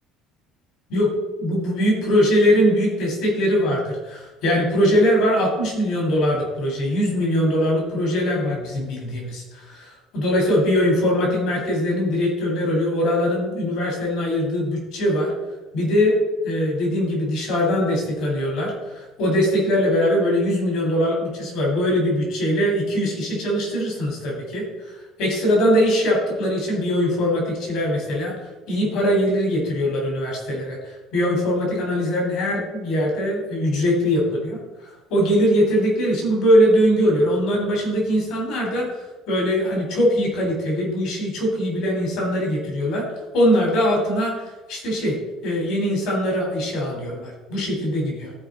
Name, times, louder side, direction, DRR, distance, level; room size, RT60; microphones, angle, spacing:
voice 1, 1.4-15.3 15.7-16.2 16.4-24.6 25.2-28.3 28.7-30.8 31.1-34.6 35.1-38.9 39.3-43.0 43.3-45.2 45.4-48.3, equal, 65° left, -1 dB, 3.4 m, -21 dB
13.5 x 4.9 x 3.8 m, 1.1 s
cardioid pair, 165°, 0 cm